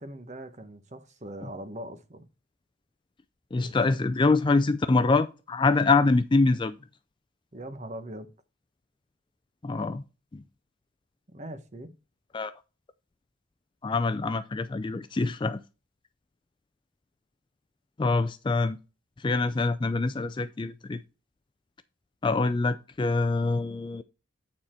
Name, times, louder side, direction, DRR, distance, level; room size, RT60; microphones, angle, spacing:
voice 1, 0.0-2.3 3.6-3.7 7.5-8.3 11.3-11.9, right 1 dB, 35° right, 1.0 m, -41 dB
voice 2, 3.5-6.8 9.6-10.0 10.3-10.4 12.3-12.5 13.8-15.6 18.0-18.8 19.2-21.0 22.2-24.0, left 3 dB, 25° left, 0.3 m, -25 dB
8.9 x 4.1 x 4.3 m
head